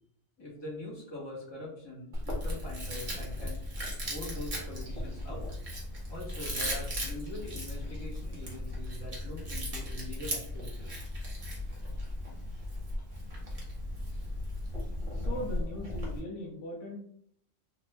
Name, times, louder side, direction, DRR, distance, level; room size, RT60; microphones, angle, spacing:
voice 1, 0.4-3.6 4.0-5.5 6.1-10.9, left 1 dB, 20° left, -5 dB, 1.1 m, -43 dB
Chewing mastication, 2.1-16.2, left 1 dB, 35° right, 0.9 m, -36 dB
voice 2, 15.1-17.0, left 1 dB, 75° left, 0 dB, 1.0 m, -39 dB
2.9 x 2.5 x 3.2 m, 0.66 s
omnidirectional pair, 1.3 m